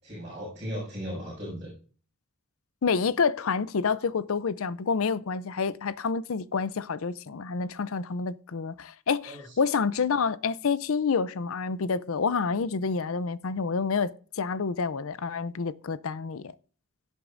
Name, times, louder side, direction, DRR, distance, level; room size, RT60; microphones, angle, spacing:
voice 1, 0.0-1.7 9.2-9.6, equal, 30° right, 6.1 m, -37 dB
voice 2, 2.8-16.4, left 5 dB, 70° left, 0.5 m, -28 dB
17.0 x 8.2 x 2.6 m
head